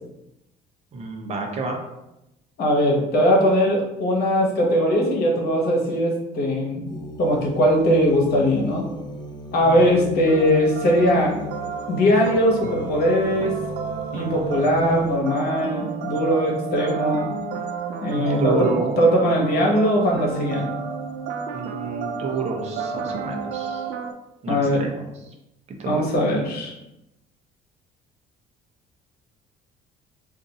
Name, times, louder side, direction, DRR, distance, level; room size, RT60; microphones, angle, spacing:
voice 1, 0.9-1.8 9.6-10.0 18.1-19.0 21.5-23.9 24.4-25.3 25.8-26.0, right 4 dB, 40° right, 1 dB, 0.7 m, -29 dB
voice 2, 2.6-6.9 7.2-8.8 9.5-11.3 11.9-13.6 14.1-17.3 18.0-20.7 24.5-24.8 25.9-26.7, equal, 65° left, -1 dB, 1.1 m, -20 dB
sound 1, 6.9-15.2, left 2 dB, 25° left, 0.4 m, -37 dB
sound 2, 10.3-24.1, right 6 dB, 80° right, 0.4 m, -31 dB
2.5 x 2.5 x 4.0 m, 0.91 s
cardioid pair, 110°, 17 cm